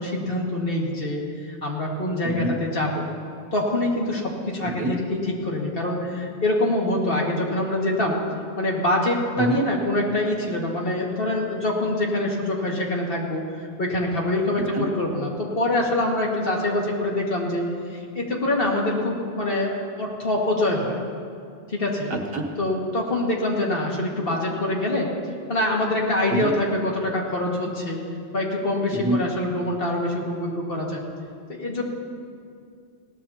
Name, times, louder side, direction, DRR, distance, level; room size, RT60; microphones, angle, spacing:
voice 1, 0.0-3.0 3.5-8.2 8.6-17.6 17.9-21.0 21.7-22.1 22.6-25.1 25.5-28.0 28.3-31.0 31.5-31.8, left 1 dB, 60° left, -2 dB, 2.1 m, -25 dB
voice 2, 22.1-22.5 26.3-26.5 28.9-29.2, right 2 dB, 65° right, 2 dB, 1.5 m, -26 dB
20.0 x 17.0 x 2.8 m, 2.4 s
omnidirectional pair, 1.1 m